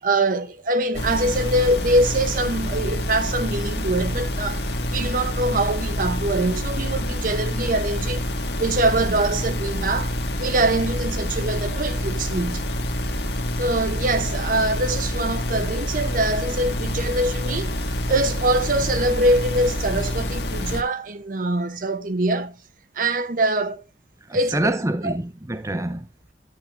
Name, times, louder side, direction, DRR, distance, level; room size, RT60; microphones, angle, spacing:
voice 1, 0.0-8.3 8.6-12.6 13.6-17.8 18.1-22.6 22.9-23.8 24.3-24.8 25.0-25.1, right 2 dB, 50° right, 0.8 m, -23 dB
sound 1, 0.9-20.8, left 1 dB, 65° left, 1.5 m, -27 dB
voice 2, 24.3-26.3, right 1 dB, 20° right, 0.7 m, -26 dB
11.5 x 9.1 x 2.9 m
head